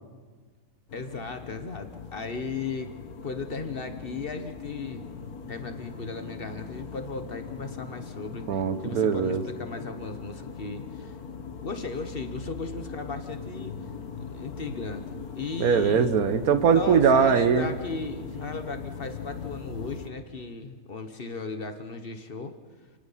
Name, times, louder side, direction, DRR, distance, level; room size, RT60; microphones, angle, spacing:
sound 1, 0.9-20.1, left 5 dB, 80° left, 1.8 m, -40 dB
voice 1, 0.9-2.9 3.2-5.1 5.5-8.5 8.8-11.1 11.6-13.8 14.3-16.1 16.7-22.6, left 3 dB, 40° left, 8 dB, 1.3 m, -36 dB
voice 2, 8.5-9.4 15.6-17.7, right 6 dB, 85° right, 11 dB, 1.6 m, -21 dB
28.5 x 18.0 x 5.7 m, 1.5 s
omnidirectional pair, 1.5 m